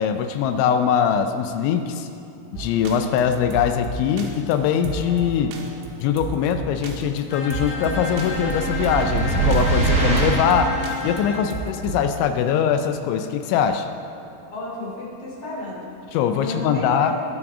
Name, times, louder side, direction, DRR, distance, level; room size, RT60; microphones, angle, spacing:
voice 1, 0.0-2.1 2.5-5.6 6.0-10.7 11.0-13.9 16.1-17.1, left 8 dB, 80° left, 8 dB, 2.8 m, -22 dB
sound 1, 2.5-12.2, right 3 dB, 90° right, 3.9 m, -34 dB
Bowed string instrument, 7.3-11.5, left 1 dB, 60° left, 1.1 m, -30 dB
sound 2, 8.0-10.6, right 3 dB, 50° right, 1.2 m, -23 dB
voice 2, 14.5-15.9 16.3-17.1, left 2 dB, 35° left, -6 dB, 3.4 m, -32 dB
20.5 x 7.4 x 4.9 m, 2.7 s
omnidirectional pair, 5.8 m